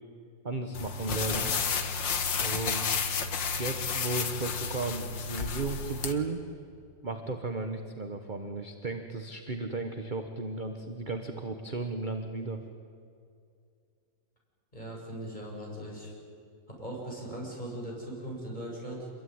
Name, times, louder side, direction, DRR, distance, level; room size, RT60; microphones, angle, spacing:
voice 1, 0.4-1.5 2.3-3.0 3.6-6.4 7.0-12.6, right 3 dB, 30° right, 6 dB, 1.3 m, -35 dB
sound 1, 0.7-6.1, left 5 dB, 85° left, 2.2 m, -31 dB
voice 2, 14.7-16.1 16.8-19.1, right 1 dB, 25° left, -2 dB, 7.7 m, -39 dB
27.0 x 22.0 x 9.6 m, 2.4 s
omnidirectional pair, 2.0 m